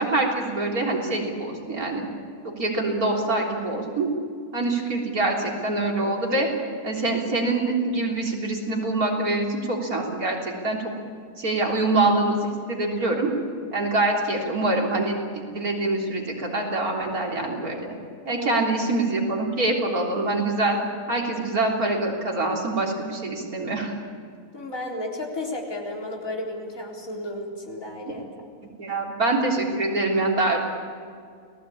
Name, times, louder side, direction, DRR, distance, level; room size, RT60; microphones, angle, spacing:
voice 1, 0.0-2.1 2.4-4.1 4.5-6.5 6.8-10.9 11.4-13.3 13.7-18.0 18.3-20.8 21.1-23.9 28.8-30.6, right 2 dB, 75° right, -1 dB, 4.0 m, -25 dB
voice 2, 18.3-18.6 24.5-28.3, left 1 dB, 65° left, -1 dB, 4.5 m, -33 dB
29.5 x 19.0 x 8.7 m, 2.2 s
omnidirectional pair, 1.6 m